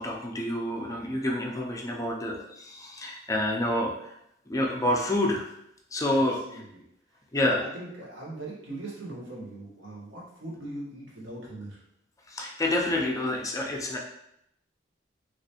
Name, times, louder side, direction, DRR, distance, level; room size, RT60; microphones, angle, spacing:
voice 1, 0.0-4.1 4.5-5.4 5.9-6.4 7.3-7.6 12.3-14.0, left 1 dB, 20° left, 0 dB, 0.4 m, -28 dB
voice 2, 6.1-6.8 7.3-11.8, right 2 dB, 85° right, -6 dB, 1.3 m, -40 dB
3.2 x 2.9 x 2.9 m, 0.78 s
head